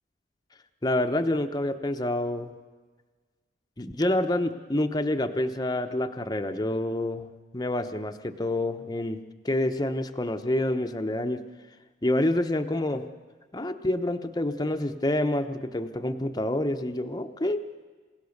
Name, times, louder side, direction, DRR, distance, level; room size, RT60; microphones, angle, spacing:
voice 1, 0.8-2.5 3.8-7.3 7.5-9.2 9.4-11.4 12.0-13.1 13.5-17.6, left 1 dB, 20° left, 7 dB, 0.9 m, -27 dB
28.5 x 17.0 x 6.6 m, 1.4 s
head